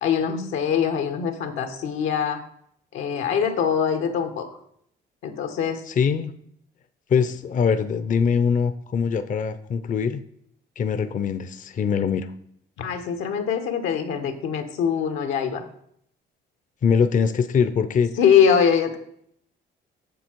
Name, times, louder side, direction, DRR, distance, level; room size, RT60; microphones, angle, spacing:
voice 1, 0.0-2.4 2.9-4.5 5.2-5.8 12.8-15.6 18.2-19.0, left 7 dB, 90° left, 6 dB, 1.3 m, -23 dB
voice 2, 5.9-6.3 7.1-10.2 10.8-12.3 16.8-18.1, left 6 dB, 40° left, 11 dB, 0.5 m, -22 dB
7.3 x 6.9 x 4.6 m, 0.69 s
cardioid pair, 90°, 20 cm